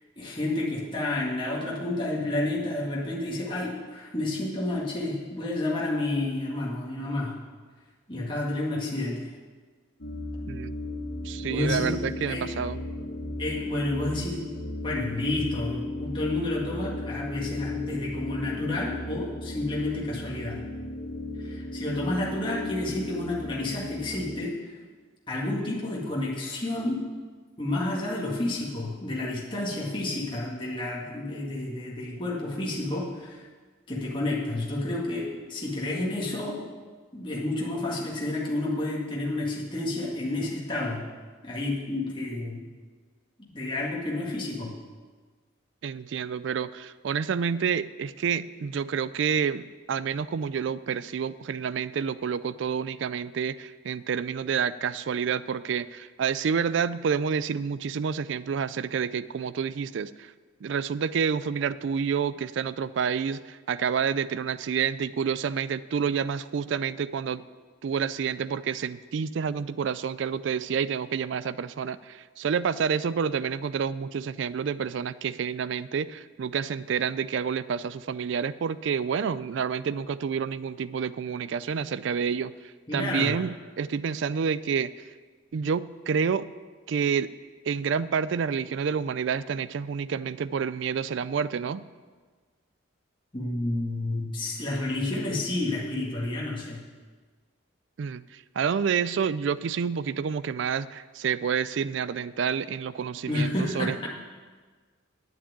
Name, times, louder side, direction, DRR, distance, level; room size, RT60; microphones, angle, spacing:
voice 1, 0.2-7.4 8.1-9.3 11.4-12.0 12.2-12.5 13.4-14.5 14.8-20.7 21.4-24.6 25.3-27.0 27.6-33.4 33.9-36.6 37.1-41.1 41.4-42.6 43.4-44.7 82.9-83.3 93.3-96.8 103.3-104.1, left 2 dB, 25° left, -4 dB, 1.9 m, -30 dB
sound 1, 10.0-24.5, left 2 dB, 75° left, 1.9 m, -35 dB
voice 2, 11.2-12.8 45.8-60.3 60.6-67.4 67.8-82.5 82.9-84.9 85.5-86.5 86.9-87.3 87.6-91.8 98.0-104.1, right 6 dB, 70° right, 16 dB, 0.3 m, -29 dB
9.5 x 7.3 x 8.8 m, 1.4 s
head